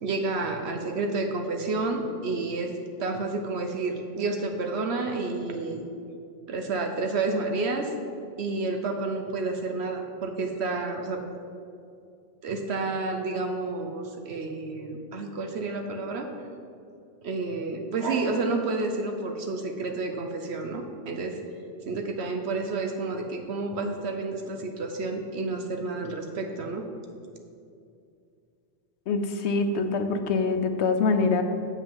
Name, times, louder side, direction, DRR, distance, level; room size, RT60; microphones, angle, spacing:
voice 1, 0.0-2.7 3.0-5.9 6.5-7.9 8.4-11.2 12.4-16.3 17.2-21.4 21.9-26.9, right 3 dB, 75° right, 4 dB, 1.0 m, -30 dB
voice 2, 29.1-31.4, left 4 dB, 80° left, 7 dB, 1.0 m, -24 dB
7.6 x 5.9 x 7.3 m, 2.5 s
omnidirectional pair, 1.1 m